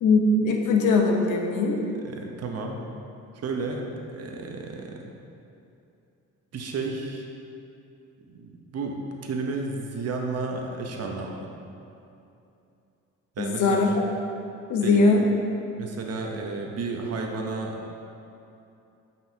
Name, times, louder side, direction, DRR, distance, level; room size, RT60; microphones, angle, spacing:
voice 1, 0.0-1.8 13.4-13.9 14.7-15.3, left 3 dB, 80° left, 2 dB, 0.8 m, -21 dB
voice 2, 2.0-2.8 3.4-5.1 6.5-7.3 8.3-11.5 13.4-13.9 14.8-15.1 15.8-17.8, right 3 dB, 55° right, 1 dB, 0.9 m, -32 dB
7.8 x 5.4 x 2.8 m, 2.7 s
cardioid pair, 90°, 30 cm